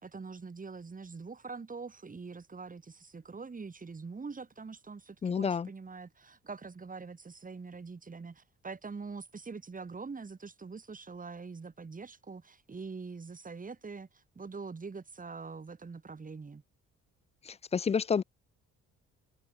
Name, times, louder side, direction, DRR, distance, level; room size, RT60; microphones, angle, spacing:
voice 1, 0.0-16.6, right 4 dB, 25° right, 2.5 m, -44 dB
voice 2, 5.2-5.7 17.4-18.2, left 6 dB, 20° left, 0.3 m, -29 dB
cardioid pair, 90°, 30 cm